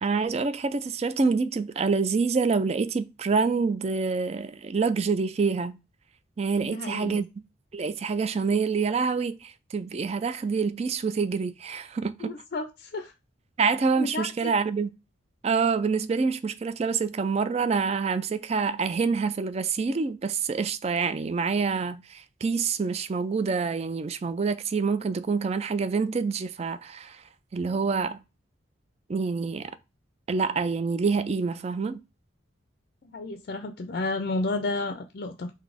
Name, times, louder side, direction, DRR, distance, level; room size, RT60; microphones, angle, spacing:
voice 1, 0.0-5.8 6.4-7.3 7.7-12.3 13.6-14.9 15.4-27.2 27.5-28.2 29.1-29.8 30.3-32.0, right 5 dB, 30° right, 0.3 m, -26 dB
voice 2, 6.6-7.2 12.2-13.1 14.0-14.5 33.0-35.5, left 2 dB, 50° left, 0.4 m, -32 dB
4.0 x 2.7 x 4.9 m
head